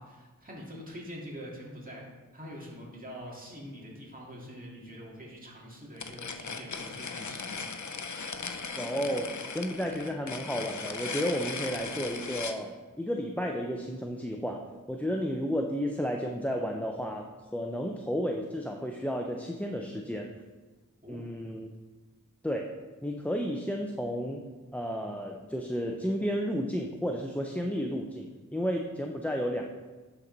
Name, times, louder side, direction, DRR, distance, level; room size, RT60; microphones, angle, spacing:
voice 1, 0.0-2.1 2.3-8.2 21.0-21.2, equal, 25° right, -4 dB, 2.3 m, -45 dB
sound 1, 6.0-12.6, left 4 dB, 60° left, 0.7 m, -38 dB
voice 2, 8.8-20.3 21.1-21.7 22.4-22.7 23.0-24.4 24.7-29.6, equal, 5° left, 2 dB, 0.6 m, -32 dB
11.5 x 4.3 x 4.0 m, 1.3 s
wide cardioid pair, 40°, 33 cm